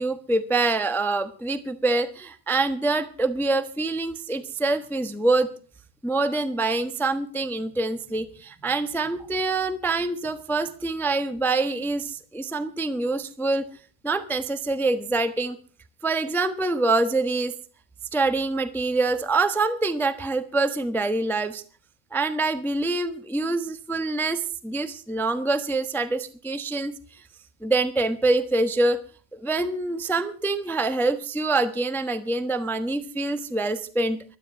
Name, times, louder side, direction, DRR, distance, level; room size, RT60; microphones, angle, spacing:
voice 1, 0.0-5.5 6.0-13.6 14.0-15.6 16.0-17.5 18.1-21.6 22.1-26.9 27.6-29.0 29.4-34.2, right 3 dB, ahead, 11 dB, 0.9 m, -25 dB
16.0 x 12.0 x 5.9 m, 0.40 s
omnidirectional pair, 1.7 m